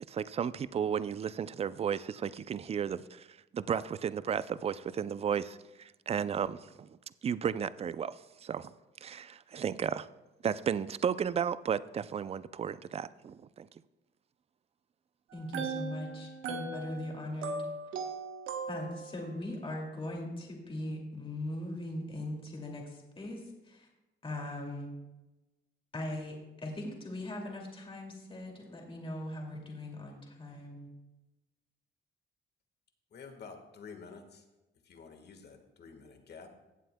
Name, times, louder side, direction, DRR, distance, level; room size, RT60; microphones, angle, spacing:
voice 1, 0.1-3.3 3.5-6.9 7.2-8.7 9.0-10.1 10.4-13.7, right 8 dB, 30° right, 0.4 m, -34 dB
voice 2, 15.3-17.6 18.7-23.9 24.2-24.9 25.9-30.9, left 1 dB, 25° left, 2.3 m, -40 dB
sound 1, 15.3-19.3, right 4 dB, 85° right, 1.1 m, -39 dB
voice 3, 33.1-34.4 34.8-36.5, left 5 dB, 55° left, 1.5 m, -49 dB
16.5 x 7.6 x 2.2 m
cardioid pair, 90°, 20 cm